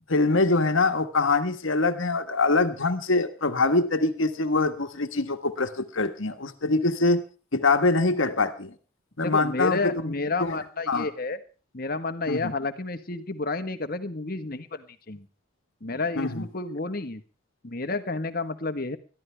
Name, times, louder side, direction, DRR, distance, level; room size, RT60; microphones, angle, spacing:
voice 1, 0.1-7.2 7.5-8.7 9.2-10.1 10.4-10.6 10.9-11.1 12.3-12.5 16.2-16.4, left 3 dB, 65° left, 8 dB, 1.5 m, -24 dB
voice 2, 9.2-11.4 11.7-15.3 15.8-17.2 17.6-19.0, left 3 dB, 45° left, 9 dB, 1.3 m, -30 dB
21.5 x 14.0 x 3.4 m, 0.36 s
head